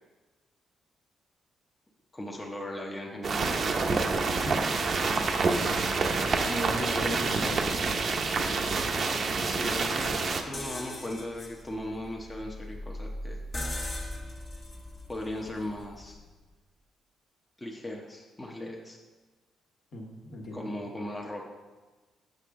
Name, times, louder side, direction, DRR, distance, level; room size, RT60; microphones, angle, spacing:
voice 1, 2.1-3.4 9.4-13.4 15.1-16.2 17.6-19.0 20.5-21.5, left 1 dB, 15° left, -1 dB, 0.8 m, -38 dB
sound 1, 3.2-10.4, right 4 dB, 50° right, 0.6 m, -27 dB
voice 2, 6.4-7.7 19.9-20.7, equal, 55° left, -1 dB, 1.4 m, -36 dB
sound 2, 10.5-16.3, left 1 dB, 35° left, 1.1 m, -39 dB
6.5 x 5.9 x 3.6 m, 1.3 s
cardioid pair, 90°, 0 cm